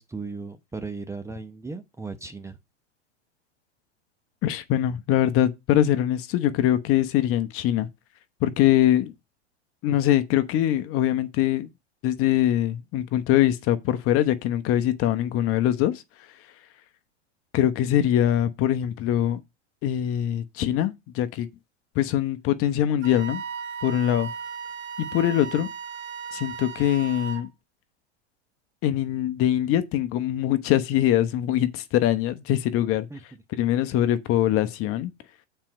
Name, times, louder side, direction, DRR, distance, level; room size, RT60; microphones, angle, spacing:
voice 1, 0.0-2.6 33.1-33.2, right 4 dB, 10° right, 0.8 m, -36 dB
voice 2, 4.4-7.9 8.4-9.1 9.8-11.7 12.0-16.0 17.5-19.4 19.8-21.5 21.9-23.4 23.8-24.3 25.0-25.7 26.3-27.5 28.8-33.1 33.6-35.1, left 12 dB, 40° left, 1.0 m, -23 dB
Wind instrument woodwind instrument, 23.0-27.5, right 6 dB, 35° right, 1.2 m, -36 dB
7.4 x 4.5 x 6.2 m
hypercardioid pair, 115°, 35 cm